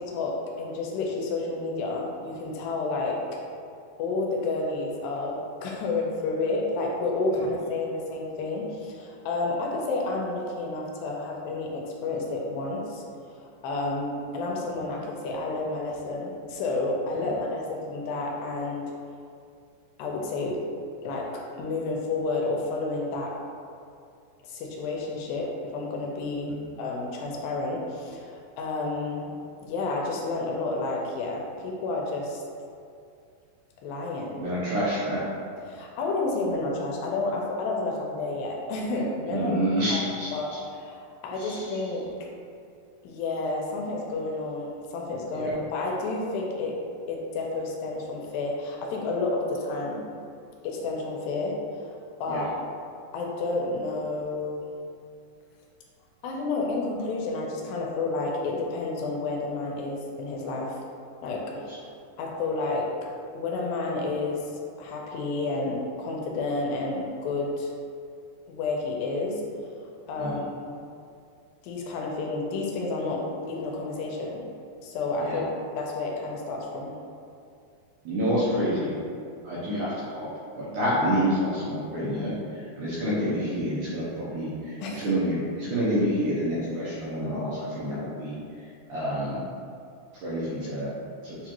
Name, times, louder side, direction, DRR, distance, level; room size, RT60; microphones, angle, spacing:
voice 1, 0.0-3.4 4.0-13.0 13.3-18.9 20.0-20.6 21.0-23.3 24.4-26.5 26.8-29.3 29.6-32.4 33.8-34.4 35.6-40.0 40.3-42.1 43.0-46.8 47.1-50.0 50.6-51.9 52.2-52.5 53.1-54.7 56.2-60.8 61.2-61.8 62.2-62.9 63.3-64.5 64.8-67.7 68.5-69.4 70.1-70.8 71.6-74.4 74.8-76.9 84.8-85.1, left 3 dB, 80° left, -1 dB, 2.3 m, -30 dB
voice 2, 34.4-35.2 39.3-40.6 41.4-41.7 45.3-45.5 52.3-52.4 61.5-61.6 70.2-70.4 75.2-75.4 78.1-79.0 79.4-80.3 80.6-88.4 88.9-89.4 90.1-90.9 91.2-91.4, equal, 80° right, -9 dB, 1.9 m, -28 dB
7.2 x 2.4 x 2.9 m, 2.4 s
omnidirectional pair, 4.3 m